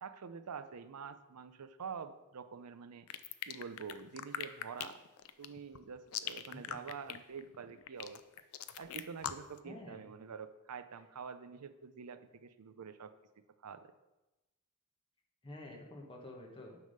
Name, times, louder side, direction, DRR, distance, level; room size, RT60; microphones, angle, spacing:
voice 1, 0.0-3.1 3.5-5.0 5.4-8.2 8.8-13.1 13.6-13.9, right 6 dB, 90° right, 12 dB, 0.5 m, -47 dB
sound 1, 3.1-9.6, left 10 dB, 70° left, 0.4 m, -41 dB
voice 2, 9.6-10.0 15.4-16.8, left 1 dB, 25° left, 0 dB, 1.4 m, -49 dB
9.6 x 3.6 x 6.6 m, 1.0 s
head